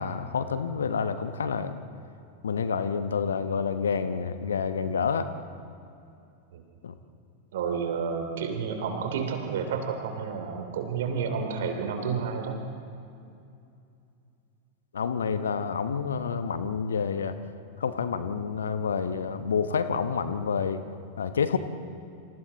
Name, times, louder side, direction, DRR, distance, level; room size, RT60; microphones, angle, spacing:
voice 1, 0.0-1.8 2.4-5.3 6.8-7.0 14.9-17.4 17.8-20.8 21.2-21.6, left 6 dB, 70° left, 11 dB, 1.1 m, -28 dB
voice 2, 7.5-12.6, right 6 dB, 55° right, 5 dB, 3.2 m, -30 dB
29.0 x 27.0 x 4.1 m, 2.6 s
figure-of-eight pair, 90°, 0 cm